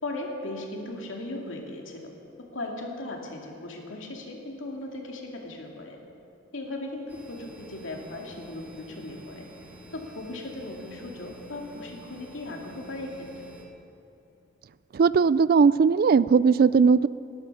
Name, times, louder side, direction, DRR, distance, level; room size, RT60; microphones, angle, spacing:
voice 1, 0.0-2.1 2.5-6.0 6.5-9.5 9.9-13.5, left 2 dB, 80° left, 1 dB, 2.4 m, -37 dB
sound 1, 7.1-13.7, equal, 10° right, 1.8 m, -49 dB
voice 2, 14.9-17.1, right 5 dB, 50° right, 18 dB, 0.3 m, -19 dB
19.5 x 11.5 x 6.1 m, 2.7 s
head